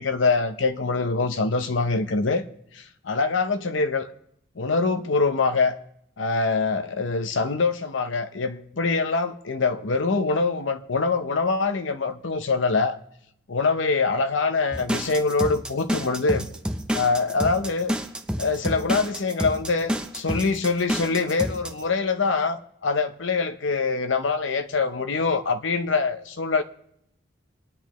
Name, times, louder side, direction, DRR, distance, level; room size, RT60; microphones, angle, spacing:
voice 1, 0.0-2.5 2.7-4.1 4.6-5.8 6.2-13.0 13.5-16.5 16.9-17.9 18.4-26.6, left 4 dB, 90° left, 0.8 m, -24 dB
sound 1, 14.7-21.8, equal, 5° right, 0.6 m, -29 dB
27.5 x 10.0 x 3.1 m
head